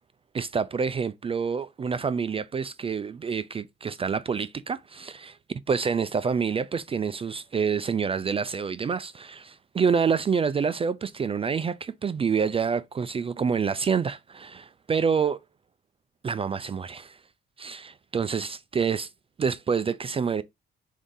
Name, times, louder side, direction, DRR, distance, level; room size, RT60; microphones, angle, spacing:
voice 1, 0.3-5.4 5.7-15.4 16.2-17.2 17.6-19.1 19.4-20.4, right 6 dB, 30° right, 0.3 m, -27 dB
4.7 x 2.7 x 3.8 m
cardioid pair, 90°, 20 cm